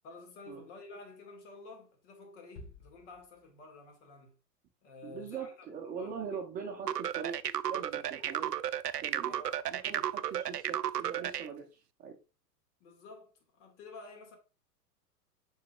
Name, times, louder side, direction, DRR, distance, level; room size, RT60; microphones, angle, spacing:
voice 1, 0.0-4.4 4.8-5.5 5.9-6.1 9.2-9.6 9.9-10.2 12.8-14.4, left 3 dB, 45° left, 2.1 m, -51 dB
sound 1, 2.6-4.0, left 2 dB, 15° left, 0.6 m, -53 dB
voice 2, 5.0-7.4 7.7-8.5 9.0-9.4 9.7-12.2, right 6 dB, 15° right, 0.8 m, -42 dB
sound 2, 6.9-11.5, right 11 dB, 75° right, 0.5 m, -33 dB
7.6 x 5.6 x 2.4 m
figure-of-eight pair, 100°, 49 cm